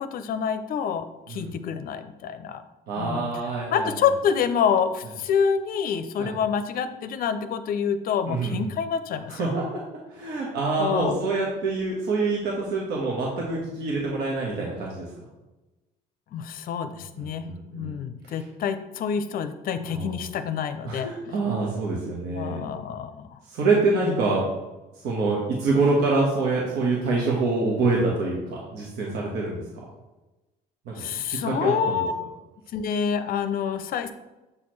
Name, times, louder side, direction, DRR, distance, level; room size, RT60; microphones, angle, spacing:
voice 1, 0.0-2.6 3.0-3.3 3.7-9.5 10.8-11.2 16.3-17.4 17.7-21.1 22.3-23.4 24.0-24.2 31.0-32.1 32.7-34.1, left 7 dB, 60° left, 10 dB, 0.5 m, -27 dB
voice 2, 2.9-3.9 6.2-6.4 8.2-8.7 9.3-9.8 10.1-15.1 16.9-18.0 19.8-20.3 20.8-22.6 23.5-24.4 25.0-29.6 30.9-32.0, right 3 dB, 75° right, -3 dB, 1.3 m, -26 dB
7.4 x 4.3 x 3.2 m, 1.0 s
cardioid pair, 110°, 17 cm